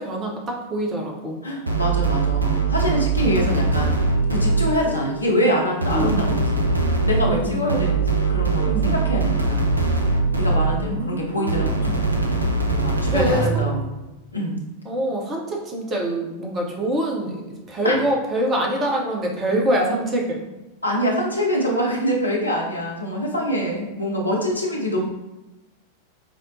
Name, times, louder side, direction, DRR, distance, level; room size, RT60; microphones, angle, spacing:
voice 1, 0.0-1.4 5.9-6.2 7.2-7.8 8.7-8.9 10.7-11.9 13.1-13.7 14.8-17.4 17.7-20.5, right 1 dB, 25° right, 0 dB, 0.8 m, -25 dB
voice 2, 1.4-3.9 4.3-6.7 7.0-9.7 10.4-12.2 12.7-13.8 14.3-14.6 17.8-18.0 20.8-25.0, equal, 80° left, -1 dB, 0.6 m, -25 dB
sound 1, 1.7-4.9 5.8-10.9 11.5-13.7, right 3 dB, 80° right, 0.4 m, -22 dB
sound 2, 3.5-8.6, left 5 dB, 40° left, 1.0 m, -37 dB
5.0 x 2.1 x 2.7 m, 1.1 s
figure-of-eight pair, 90°, 0 cm